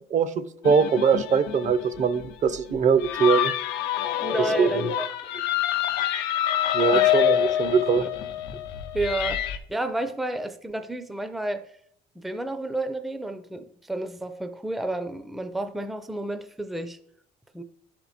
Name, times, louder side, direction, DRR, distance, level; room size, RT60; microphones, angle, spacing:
voice 1, 0.1-3.5 4.4-4.8 6.7-8.1, right 6 dB, 45° right, 0.6 m, -22 dB
sound 1, 0.6-9.6, left 11 dB, 90° left, 0.7 m, -26 dB
voice 2, 4.2-5.1 5.3-5.4 6.9-7.1 8.9-11.7 12.2-17.0 17.5-17.6, right 2 dB, ahead, 0.5 m, -31 dB
10.5 x 4.5 x 4.1 m
cardioid pair, 110°, 17 cm